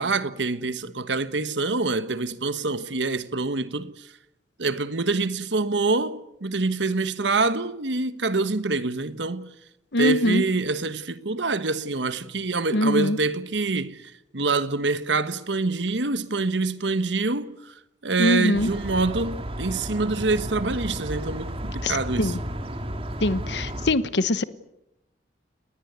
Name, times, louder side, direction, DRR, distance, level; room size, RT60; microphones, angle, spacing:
voice 1, 0.0-4.1 4.6-9.5 10.0-17.6 18.0-22.4, right 3 dB, 80° right, 1.3 m, -26 dB
voice 2, 9.9-10.4 12.7-13.2 18.2-18.7 21.8-21.9 22.2-22.4 23.2-24.4, left 1 dB, 75° left, 1.1 m, -22 dB
sound 1, 18.5-23.9, equal, 30° right, 2.1 m, -33 dB
29.5 x 20.0 x 8.1 m
head